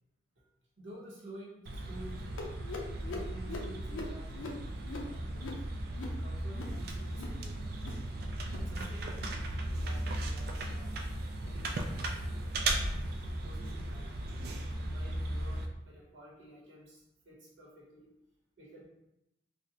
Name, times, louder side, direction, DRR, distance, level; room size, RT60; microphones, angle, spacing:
voice 1, 0.8-2.6 3.0-5.6 6.2-8.0 8.5-9.4 9.7-11.0 11.4-12.5 13.4-14.3 14.8-18.1 18.6-18.8, right 1 dB, 80° right, -5 dB, 0.9 m, -52 dB
sound 1, 1.7-15.7, right 1 dB, 50° right, 0.3 m, -36 dB
sound 2, 2.4-7.4 7.7-8.1 8.3-8.7 9.0-9.4 9.8-10.1 10.5-10.9 11.3-11.6 12.1-12.4 13.0-13.2 13.8-14.0 14.7-14.8 15.5-15.6, left 2 dB, 85° left, 0.5 m, -44 dB
3.7 x 2.1 x 2.7 m, 0.87 s
head